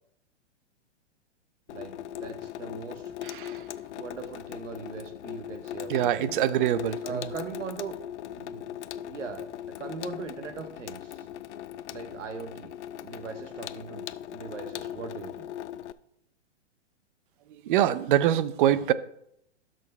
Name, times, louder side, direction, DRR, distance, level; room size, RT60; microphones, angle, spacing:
Water tap faucet / Sink (filling or washing), 1.7-15.9, left 11 dB, 70° left, 0.5 m, -39 dB
voice 1, 1.7-3.1 3.9-6.3 7.0-8.0 8.3-8.7 9.0-11.3 11.9-15.5, right 5 dB, 85° right, 1.1 m, -40 dB
voice 2, 3.2-3.6 5.9-7.3 17.6-18.9, right 11 dB, 45° right, 0.5 m, -24 dB
16.5 x 6.3 x 2.2 m
hypercardioid pair, 125°, 36 cm